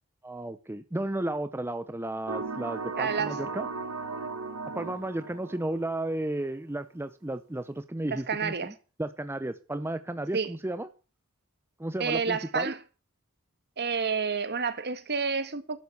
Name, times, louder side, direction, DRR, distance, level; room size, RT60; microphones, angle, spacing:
voice 1, 0.2-3.7 4.7-10.9 11.8-12.7, right 1 dB, 10° right, 0.6 m, -33 dB
sound 1, 2.3-6.1, right 4 dB, 75° right, 1.7 m, -36 dB
voice 2, 3.0-3.4 8.1-8.7 10.3-10.5 12.0-12.8 13.8-15.8, right 5 dB, 50° right, 1.6 m, -29 dB
11.5 x 11.0 x 6.9 m
head